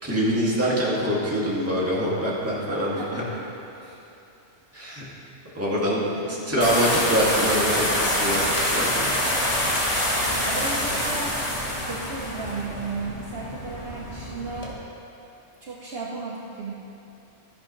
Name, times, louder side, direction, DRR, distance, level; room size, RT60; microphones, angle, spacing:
voice 1, 0.0-3.2 4.7-5.0 5.5-9.1, equal, 10° right, -7 dB, 2.1 m, -25 dB
voice 2, 2.8-3.5 3.8-4.0 6.0-6.7 9.9-14.8 15.6-16.7, right 3 dB, 55° right, -4 dB, 1.0 m, -35 dB
sound 1, 6.6-14.7, left 1 dB, 25° left, 1.4 m, -26 dB
13.5 x 11.0 x 3.1 m, 2.8 s
omnidirectional pair, 1.2 m